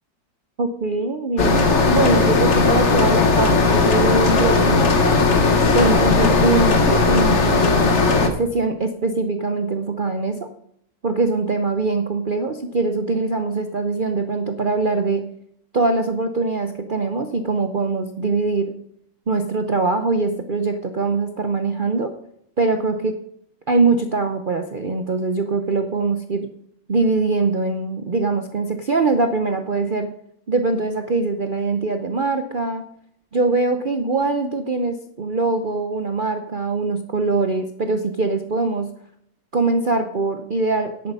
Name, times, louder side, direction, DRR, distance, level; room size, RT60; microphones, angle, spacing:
voice 1, 0.6-5.2 5.7-7.9 8.2-10.5 11.0-15.3 15.7-18.8 19.3-22.1 22.6-23.2 23.7-26.5 26.9-30.1 30.5-32.8 33.3-38.9 39.5-41.1, right 3 dB, 80° right, 7 dB, 0.4 m, -22 dB
sound 1, 1.4-8.3, left 3 dB, 40° left, 1.4 m, -17 dB
10.5 x 8.5 x 5.4 m, 0.71 s
omnidirectional pair, 2.1 m